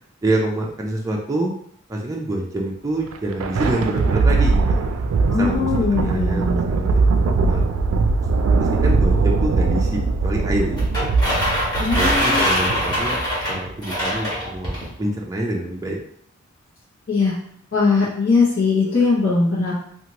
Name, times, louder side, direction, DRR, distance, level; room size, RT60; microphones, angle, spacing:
voice 1, 0.2-1.5 1.9-4.8 5.4-7.2 7.5-7.7 8.6-11.2 11.9-13.2 13.5-16.0, right 1 dB, 15° right, -2 dB, 0.4 m, -26 dB
Thunder, 3.0-13.7, right 3 dB, 90° right, 0.3 m, -20 dB
voice 2, 5.3-6.6 11.8-12.5 17.1-17.3 17.7-19.7, left 4 dB, 60° left, -11 dB, 1.0 m, -20 dB
sound 1, 10.8-14.9, equal, 20° left, 1.1 m, -23 dB
2.8 x 2.5 x 2.9 m, 0.65 s
head